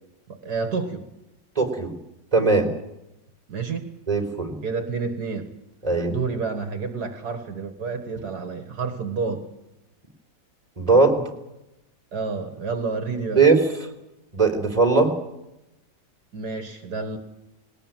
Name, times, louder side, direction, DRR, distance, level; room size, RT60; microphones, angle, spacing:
voice 1, 0.4-1.1 3.5-3.9 4.6-5.5 6.1-9.5 12.1-13.4 16.3-17.2, right 4 dB, 65° right, 7 dB, 2.2 m, -29 dB
voice 2, 1.6-1.9 2.3-2.7 4.1-4.5 5.8-6.1 10.8-11.3 13.4-13.6 14.3-15.1, right 4 dB, 20° right, 4 dB, 3.8 m, -19 dB
20.5 x 19.0 x 9.1 m, 0.89 s
omnidirectional pair, 1.9 m